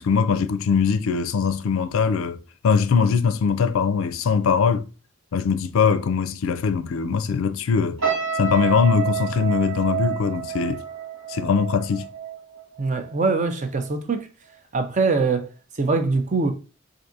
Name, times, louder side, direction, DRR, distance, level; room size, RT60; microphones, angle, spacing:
voice 1, 0.0-2.4 2.6-4.9 5.3-8.0 8.4-10.8 11.3-12.1, left 6 dB, 75° left, 0.4 m, -21 dB
sound 1, 8.0-13.3 13.6-13.9, right 7 dB, 70° right, 1.2 m, -29 dB
voice 2, 12.8-14.3 14.7-15.5 15.8-16.5, right 4 dB, 35° right, 0.5 m, -22 dB
4.7 x 2.6 x 2.6 m
head